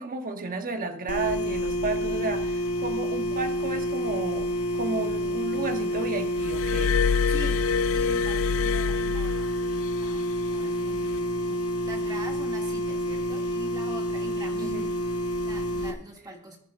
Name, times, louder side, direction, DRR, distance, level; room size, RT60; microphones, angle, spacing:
voice 1, 0.0-4.5 4.7-6.9 14.6-14.9, right 3 dB, 40° right, 6 dB, 1.2 m, -32 dB
sound 1, 1.1-15.9, equal, 85° left, 1.3 m, -28 dB
Glass, 6.4-10.0 11.0-11.2, left 7 dB, 65° left, 0.4 m, -27 dB
voice 2, 7.3-14.9 15.3-16.6, right 1 dB, 20° right, 0 dB, 2.4 m, -43 dB
21.5 x 9.4 x 2.6 m, 0.65 s
head